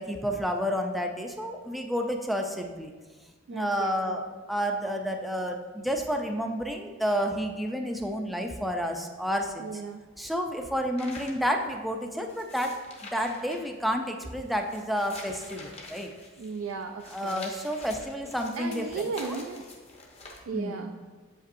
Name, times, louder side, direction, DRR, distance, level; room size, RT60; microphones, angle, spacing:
voice 1, 0.0-2.9 3.5-9.7 10.2-12.8 13.1-16.1 17.1-18.9 19.2-19.4 20.5-20.9, equal, ahead, 3 dB, 0.4 m, -30 dB
voice 2, 3.5-4.2 9.6-10.0 16.4-17.8 18.5-19.6 20.5-21.0, right 4 dB, 85° right, 4 dB, 0.4 m, -36 dB
sound 1, 11.0-20.4, left 2 dB, 30° left, 0.8 m, -47 dB
7.4 x 5.4 x 2.5 m, 1.4 s
head